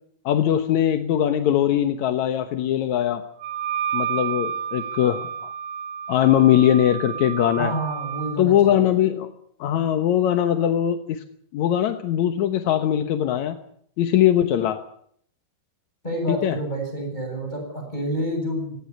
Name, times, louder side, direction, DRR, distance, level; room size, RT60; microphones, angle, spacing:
voice 1, 0.3-3.2 3.9-5.5 6.1-7.7 8.4-9.3 9.6-11.2 11.5-13.6 14.0-14.8 16.3-16.6, left 11 dB, 65° left, 8 dB, 2.0 m, -21 dB
Wind instrument woodwind instrument, 3.4-8.4, right 8 dB, 85° right, 3.1 m, -30 dB
voice 2, 7.6-8.8 16.0-18.8, right 1 dB, 10° left, 2 dB, 8.0 m, -28 dB
19.0 x 17.5 x 9.9 m, 0.65 s
omnidirectional pair, 4.5 m